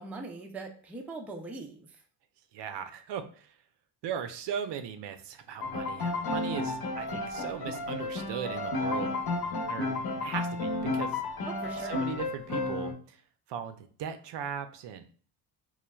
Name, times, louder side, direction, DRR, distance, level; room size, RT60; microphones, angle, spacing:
voice 1, 0.0-1.8 11.4-12.0, right 3 dB, 5° right, 2 dB, 0.4 m, -41 dB
voice 2, 2.5-3.5 4.0-9.1 9.7-11.2 11.8-13.2 13.5-15.1, right 8 dB, 60° right, 9 dB, 0.5 m, -38 dB
Piano, 5.6-12.9, left 2 dB, 45° left, 0.9 m, -32 dB
3.1 x 2.2 x 2.2 m, 0.43 s
supercardioid pair, 70°, 50 cm